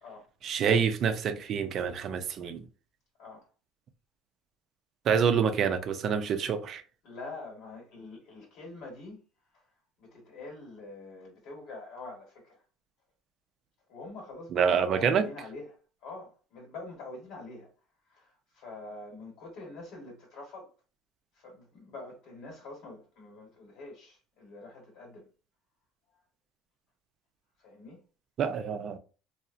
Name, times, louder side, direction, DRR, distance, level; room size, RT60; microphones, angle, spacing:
voice 1, 0.4-2.6 5.1-6.8 14.5-15.3 28.4-29.0, right 7 dB, 50° right, 0.4 m, -27 dB
voice 2, 7.0-9.2 9.5-9.6 10.0-12.6 13.9-15.8 16.0-17.7 18.0-20.7 21.3-25.3 27.6-28.0 28.7-28.8, left 2 dB, 70° left, 1.0 m, -45 dB
2.8 x 2.0 x 2.4 m
cardioid pair, 115°, 0 cm